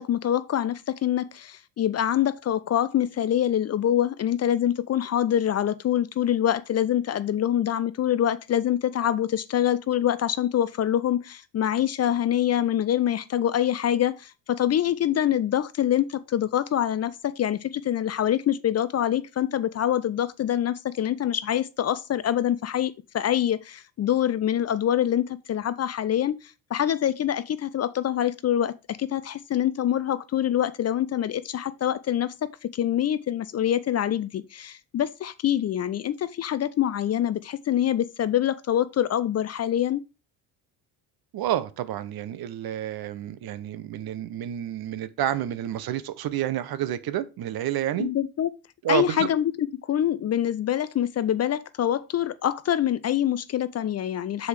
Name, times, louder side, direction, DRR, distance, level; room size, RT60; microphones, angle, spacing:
voice 1, 0.0-28.7 29.0-40.0 48.0-48.5 48.9-54.5, left 11 dB, 35° left, 0.5 m, -25 dB
voice 2, 41.3-48.1 48.8-49.3, right 12 dB, 55° right, 0.8 m, -29 dB
6.3 x 4.7 x 3.4 m
supercardioid pair, 65°, 44 cm